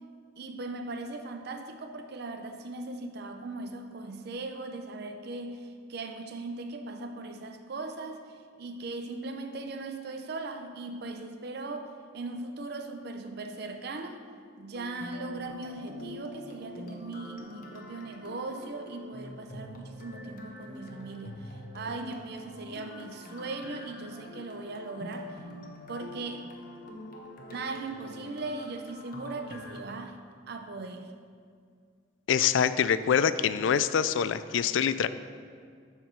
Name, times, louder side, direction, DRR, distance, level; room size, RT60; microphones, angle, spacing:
voice 1, 0.4-8.2 8.6-14.2 14.6-25.4 25.9-26.5 27.5-31.1, right 3 dB, 60° right, 7 dB, 0.5 m, -39 dB
sound 1, 14.6-29.8, left 1 dB, 50° left, 1.1 m, -45 dB
voice 2, 32.3-35.1, left 8 dB, 80° left, 14 dB, 0.4 m, -25 dB
12.5 x 4.6 x 4.5 m, 2.1 s
head